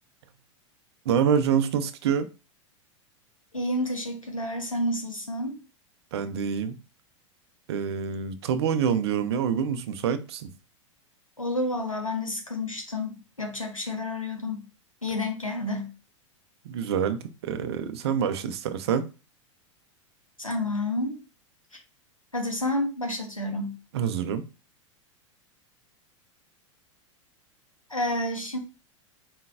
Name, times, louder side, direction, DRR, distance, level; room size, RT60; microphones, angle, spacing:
voice 1, 1.0-2.3 6.1-6.8 7.7-10.5 16.6-19.1 23.9-24.4, right 7 dB, 55° right, 0.6 m, -26 dB
voice 2, 3.5-5.6 11.4-14.6 15.0-15.9 20.4-21.2 22.3-23.8 27.9-28.6, left 1 dB, 90° left, 1.0 m, -30 dB
4.3 x 3.8 x 2.4 m
figure-of-eight pair, 90°, 17 cm